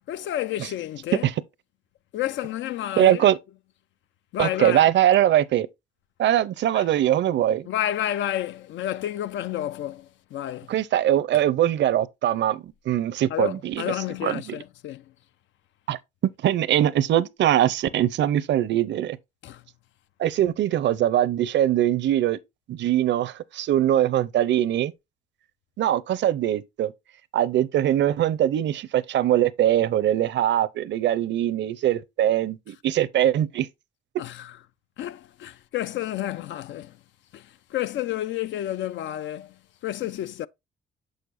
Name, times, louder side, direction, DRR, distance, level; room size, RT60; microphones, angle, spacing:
voice 1, 0.1-1.3 2.1-3.3 4.3-4.9 6.7-6.8 7.7-10.7 11.3-11.4 13.3-15.0 19.4-19.6 34.2-34.6 35.0-37.0 37.3-40.5, left 12 dB, 70° left, 0.4 m, -30 dB
voice 2, 3.0-3.4 4.4-5.7 6.2-7.7 10.7-13.8 14.2-14.4 15.9-16.0 16.4-19.2 20.2-22.4 22.7-24.9 25.8-26.9 27.3-33.7, right 12 dB, 65° right, 0.5 m, -22 dB
6.5 x 6.4 x 2.5 m
cardioid pair, 90°, 20 cm